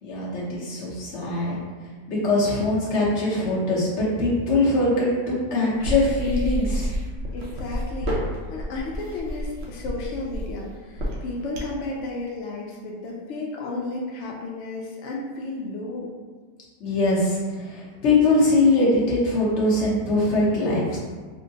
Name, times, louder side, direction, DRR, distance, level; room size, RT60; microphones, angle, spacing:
voice 1, 0.0-1.6 2.1-6.9 16.8-21.0, left 2 dB, 50° left, -6 dB, 1.0 m, -22 dB
sound 1, 5.8-11.9, equal, 60° right, 0.8 m, -29 dB
voice 2, 7.3-16.1, left 2 dB, 80° left, -2 dB, 0.6 m, -33 dB
4.5 x 2.1 x 2.7 m, 1.5 s
omnidirectional pair, 1.8 m